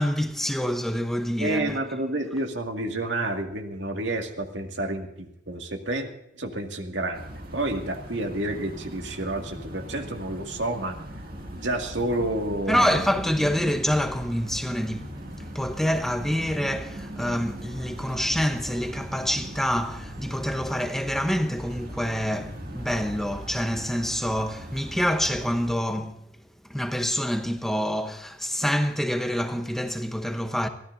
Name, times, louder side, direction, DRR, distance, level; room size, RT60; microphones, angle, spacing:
voice 1, 0.0-1.8 12.7-26.2 26.7-30.7, equal, ahead, 0.8 m, -27 dB
voice 2, 1.4-11.0 11.5-13.1, right 1 dB, 70° right, 2.1 m, -30 dB
sound 1, 7.1-25.7, right 1 dB, 50° right, 2.2 m, -39 dB
23.5 x 16.0 x 2.6 m
head